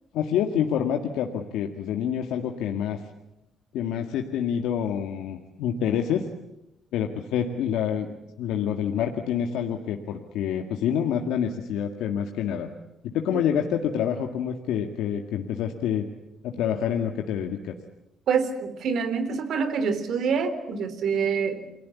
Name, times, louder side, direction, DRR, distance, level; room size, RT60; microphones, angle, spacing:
voice 1, 0.1-3.0 3.7-6.3 6.9-12.7 13.0-16.1 16.4-17.8, left 8 dB, 85° left, 4 dB, 1.9 m, -27 dB
voice 2, 18.3-21.7, right 6 dB, 70° right, 11 dB, 3.4 m, -26 dB
29.0 x 21.0 x 8.4 m, 0.89 s
cardioid pair, 85°, 0 cm